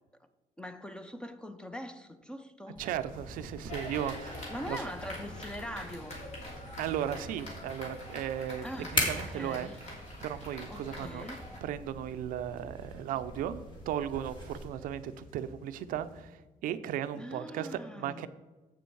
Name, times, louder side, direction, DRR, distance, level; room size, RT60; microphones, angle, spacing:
voice 1, 0.6-2.8 4.5-6.2 8.6-9.8 10.7-11.4 17.1-18.3, equal, 5° left, 0.5 m, -42 dB
sound 1, 2.8-14.6, left 1 dB, 35° left, 2.3 m, -41 dB
voice 2, 2.8-4.8 6.8-8.6 8.9-9.7 10.2-11.3 11.6-18.3, right 10 dB, 85° right, 0.5 m, -36 dB
sound 2, 3.1-16.2, equal, 90° left, 2.5 m, -53 dB
sound 3, 3.7-11.6, left 1 dB, 50° left, 2.8 m, -45 dB
7.7 x 7.0 x 4.6 m
cardioid pair, 135°, 14 cm